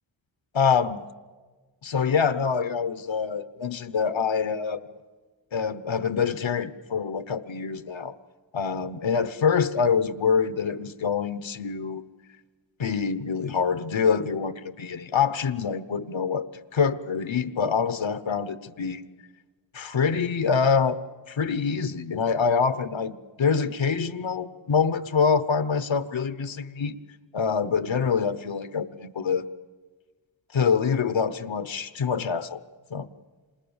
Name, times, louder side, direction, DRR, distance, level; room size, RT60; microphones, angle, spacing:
voice 1, 0.5-1.1 1.8-4.9 5.5-8.2 8.5-12.0 12.8-16.5 16.7-19.0 19.7-21.0 21.3-26.9 27.3-29.4 30.5-32.6 32.9-33.1, left 6 dB, 80° left, 13 dB, 1.1 m, -25 dB
28.0 x 27.0 x 7.2 m, 1.4 s
wide cardioid pair, 65°, 45 cm